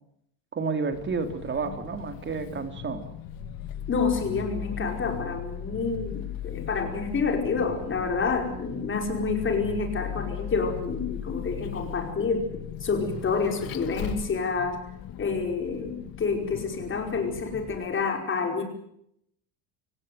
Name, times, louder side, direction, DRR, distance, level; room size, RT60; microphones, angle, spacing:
voice 1, 0.5-3.1, right 4 dB, 30° right, 7 dB, 3.4 m, -30 dB
Vehicle, 0.9-17.8, left 10 dB, 55° left, 2.0 m, -38 dB
voice 2, 3.9-12.5 12.8-14.8 15.2-18.6, left 4 dB, 30° left, 4 dB, 5.2 m, -28 dB
26.0 x 17.0 x 9.5 m, 0.75 s
cardioid pair, 140°, 40 cm